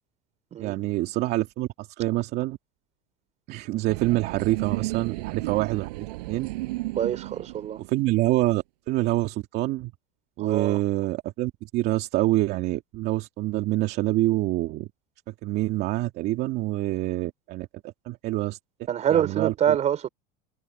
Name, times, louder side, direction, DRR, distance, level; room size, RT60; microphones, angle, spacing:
voice 1, 0.6-2.6 3.5-5.9 6.3-6.5 7.9-9.9 10.4-14.9 15.4-18.6 19.1-19.8, right 17 dB, 50° right, 2.5 m, -26 dB
sound 1, 3.9-8.3, right 20 dB, 80° right, 7.8 m, -33 dB
voice 2, 7.0-7.8 10.4-10.8 18.9-20.1, right 9 dB, 35° right, 4.2 m, -25 dB
supercardioid pair, 125°, 21 cm